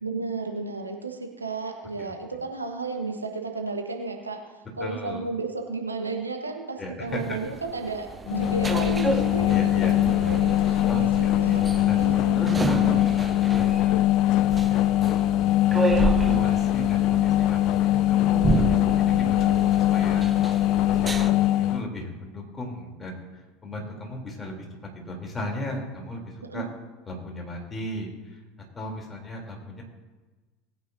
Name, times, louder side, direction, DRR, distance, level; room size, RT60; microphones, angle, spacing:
voice 1, 0.0-9.7 10.1-11.1 11.4-11.6 12.0-12.4 19.4-19.6 26.5-26.6, right 3 dB, 90° right, 3 dB, 1.2 m, -33 dB
voice 2, 4.8-5.2 6.8-7.4 9.5-10.0 10.9-11.6 11.8-12.0 12.3-13.1 13.5-23.2 23.6-24.6 24.9-26.6 27.1-28.4 28.7-29.8, left 1 dB, 20° left, 0 dB, 3.2 m, -36 dB
sound 1, 7.1-21.3, right 4 dB, 15° right, 0.7 m, -31 dB
sound 2, 8.3-21.8, left 14 dB, 55° left, 0.3 m, -22 dB
19.5 x 9.2 x 2.7 m, 1.2 s
figure-of-eight pair, 75°, 0 cm